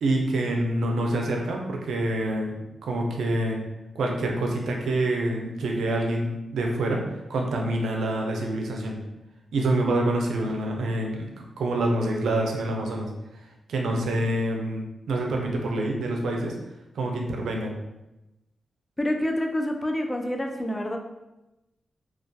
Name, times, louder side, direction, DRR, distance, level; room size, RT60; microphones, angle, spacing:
voice 1, 0.0-3.6 4.0-7.0 7.3-9.0 9.5-13.1 13.7-16.5 17.0-17.8, right 1 dB, 85° right, 1 dB, 0.4 m, -26 dB
voice 2, 19.0-21.0, left 1 dB, 20° left, 3 dB, 0.4 m, -27 dB
2.3 x 2.2 x 2.5 m, 0.96 s
cardioid pair, 60°, 0 cm